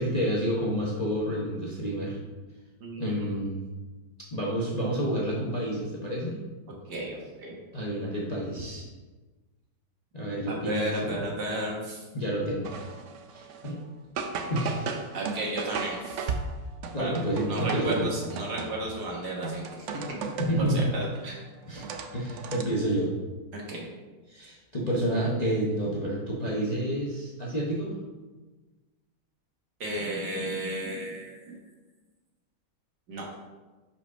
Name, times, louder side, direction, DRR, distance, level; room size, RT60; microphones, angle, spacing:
voice 1, 0.0-2.2 3.0-3.6 4.3-6.4 7.7-8.9 10.1-11.3 12.1-12.7 13.3-13.8 14.5-15.0 16.9-18.1 20.5-20.9 21.7-21.9 22.1-23.1 24.3-27.9, right 1 dB, 30° left, -5 dB, 0.8 m, -29 dB
voice 2, 2.8-3.3 6.9-7.5 10.5-12.0 15.1-16.3 17.0-17.2 17.5-20.0 20.6-21.4 23.5-23.9 29.8-31.6 33.1-33.3, right 1 dB, 65° right, -2 dB, 2.0 m, -33 dB
sound 1, 12.7-13.8 14.2-19.0 19.4-20.7 21.1-22.6, right 5 dB, 80° right, 0.6 m, -36 dB
5.4 x 4.9 x 5.3 m, 1.2 s
omnidirectional pair, 2.0 m